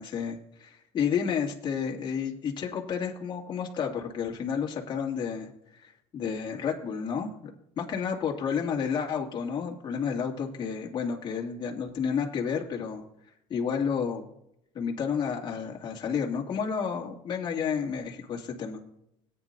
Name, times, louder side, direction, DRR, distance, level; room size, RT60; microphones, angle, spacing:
voice 1, 0.0-13.0 13.5-14.3 14.7-18.8, left 6 dB, 40° left, -1 dB, 2.4 m, -31 dB
18.5 x 9.5 x 2.7 m, 0.77 s
cardioid pair, 130°, 12 cm